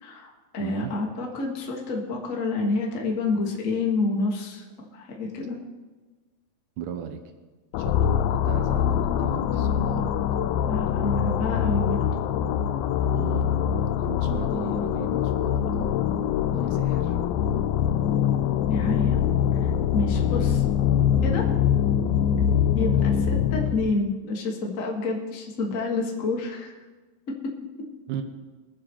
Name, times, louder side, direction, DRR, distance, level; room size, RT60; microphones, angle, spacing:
voice 1, 0.0-4.6 4.9-5.6 10.7-12.0 18.7-19.2 19.6-20.6 21.2-21.5 22.7-26.7 27.9-28.0, left 3 dB, 50° left, -1 dB, 0.9 m, -28 dB
voice 2, 0.6-0.9 6.8-7.2 7.8-10.2 13.1-13.5 14.0-15.9 16.4-17.2 28.1-28.2, right 9 dB, 75° right, 6 dB, 2.3 m, -36 dB
sound 1, 7.7-23.9, left 9 dB, 85° left, 2.4 m, -24 dB
22.5 x 7.7 x 4.5 m, 1.3 s
omnidirectional pair, 4.0 m